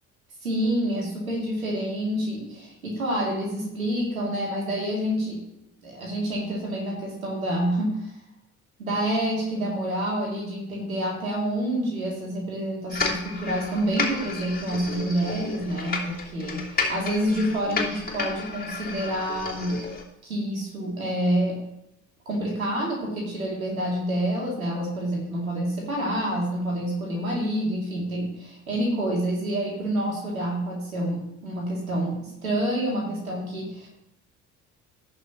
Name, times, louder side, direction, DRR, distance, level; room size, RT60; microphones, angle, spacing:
voice 1, 0.4-5.4 5.8-8.1 8.8-19.8 20.2-21.6 22.3-33.9, right 1 dB, 85° right, -2 dB, 2.9 m, -28 dB
sound 1, 12.9-20.0, left 4 dB, 20° left, 2.8 m, -32 dB
18.0 x 6.4 x 3.1 m, 0.80 s
figure-of-eight pair, 55°, 41 cm